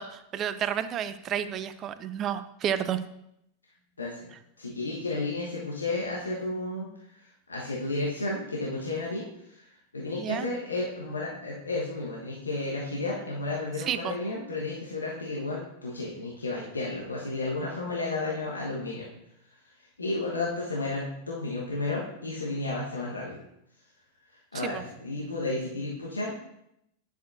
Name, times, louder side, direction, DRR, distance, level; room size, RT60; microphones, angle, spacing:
voice 1, 0.0-3.0 10.2-10.5 13.9-14.1 24.6-24.8, right 9 dB, 30° right, 12 dB, 0.4 m, -31 dB
voice 2, 4.0-4.3 4.6-6.9 7.5-19.1 20.0-23.4 24.5-26.3, left 2 dB, 75° left, -4 dB, 1.2 m, -32 dB
9.9 x 6.5 x 2.6 m, 0.79 s
figure-of-eight pair, 90°, 0 cm